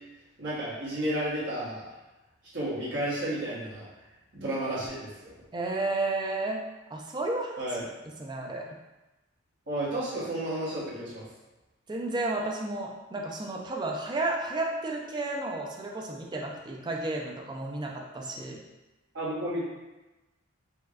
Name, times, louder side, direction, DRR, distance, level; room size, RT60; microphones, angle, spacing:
voice 1, 0.4-1.9 2.5-3.9 4.3-5.3 7.6-7.8 9.7-11.3 19.1-19.6, right 1 dB, 60° right, -9 dB, 1.2 m, -32 dB
voice 2, 5.5-6.6 6.9-7.5 8.2-8.7 11.9-18.6, right 2 dB, 20° right, 0 dB, 0.4 m, -32 dB
4.5 x 2.2 x 2.4 m, 1.1 s
head